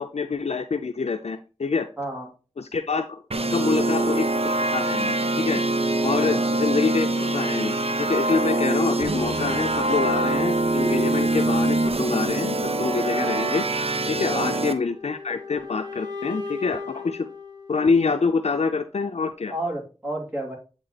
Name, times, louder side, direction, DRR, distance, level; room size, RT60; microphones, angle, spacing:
voice 1, 0.0-1.9 2.6-3.2 3.5-5.6 6.0-13.6 14.1-17.3 17.7-19.5, left 4 dB, 90° left, 6 dB, 0.5 m, -26 dB
voice 2, 2.0-2.3 6.2-6.5 14.3-14.6 19.5-20.6, right 1 dB, 15° right, -2 dB, 2.8 m, -31 dB
sound 1, 3.3-14.7, right 2 dB, 65° right, 0.7 m, -24 dB
sound 2, 14.4-18.4, left 4 dB, 40° right, 2.5 m, -37 dB
8.9 x 3.6 x 4.0 m, 0.33 s
wide cardioid pair, 45°, 11 cm